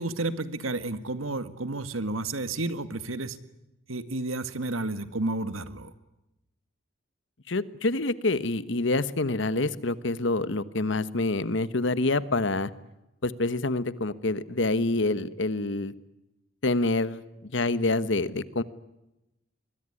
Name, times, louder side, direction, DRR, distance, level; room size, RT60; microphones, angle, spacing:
voice 1, 0.0-3.4 3.9-5.9, right 2 dB, 90° right, 12 dB, 1.8 m, -31 dB
voice 2, 7.5-12.7 13.2-15.9 16.6-18.6, left 2 dB, 65° left, 15 dB, 1.2 m, -27 dB
25.0 x 22.0 x 9.9 m, 0.94 s
head